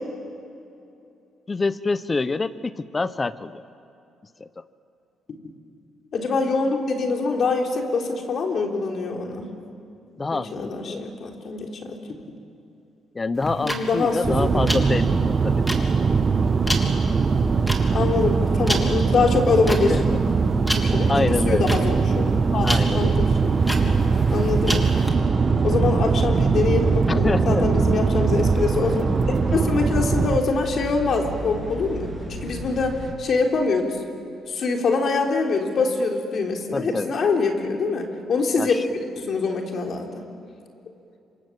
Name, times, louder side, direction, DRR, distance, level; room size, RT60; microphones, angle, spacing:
voice 1, 1.5-3.6 4.4-4.6 10.2-11.0 13.1-15.6 19.9-20.2 21.1-21.7 22.6-23.2 27.1-27.7 36.7-37.1 38.6-38.8, left 3 dB, 30° left, 15 dB, 1.1 m, -26 dB
voice 2, 6.1-9.5 10.3-12.0 13.6-14.7 17.9-20.0 20.8-21.1 21.5-23.5 24.3-24.8 25.6-29.1 29.5-34.0 34.5-38.8 39.2-40.2, left 4 dB, 55° left, 2 dB, 3.8 m, -24 dB
sound 1, 13.3-25.1, equal, 5° left, 3.5 m, -31 dB
sound 2, 14.2-30.4, right 5 dB, 40° right, 1.3 m, -21 dB
sound 3, 22.9-33.1, right 1 dB, 10° right, 7.5 m, -34 dB
27.0 x 26.0 x 7.7 m, 2.7 s
cardioid pair, 75°, 0 cm